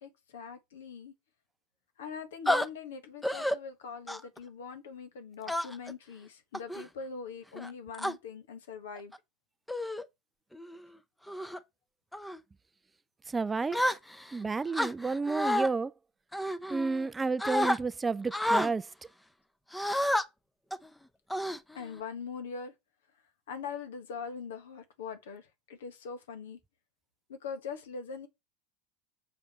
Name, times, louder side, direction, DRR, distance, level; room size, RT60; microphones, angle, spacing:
voice 1, 0.0-1.1 2.0-9.1 21.7-22.7 23.5-26.6 27.3-28.3, left 6 dB, 75° left, 1.4 m, -42 dB
sound 1, 2.5-2.7 3.2-3.6 4.1-4.4 5.5-5.9 6.5-6.8 7.6-8.1 9.0-9.2 9.7-10.0 10.5-10.8 11.3-11.6 12.1-12.4 13.7-14.3 14.7-15.7 16.3-17.1 17.4-17.8 18.3-18.7 19.7-20.2 20.7-20.9 21.3-22.0, left 1 dB, 5° left, 0.7 m, -30 dB
voice 2, 13.3-13.8 14.3-15.9 16.7-18.9, right 4 dB, 20° right, 0.3 m, -31 dB
6.6 x 5.0 x 4.3 m
hypercardioid pair, 80°, 0 cm